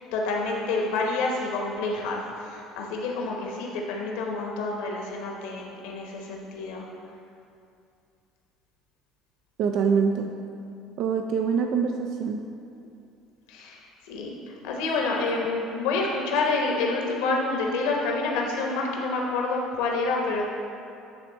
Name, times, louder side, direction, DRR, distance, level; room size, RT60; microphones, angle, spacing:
voice 1, 0.1-6.9 13.5-20.5, left 3 dB, 70° left, 0 dB, 1.0 m, -28 dB
voice 2, 9.6-10.3 11.0-12.4, right 6 dB, 60° right, 4 dB, 0.3 m, -24 dB
9.4 x 3.3 x 4.0 m, 2.5 s
hypercardioid pair, 65°, 0 cm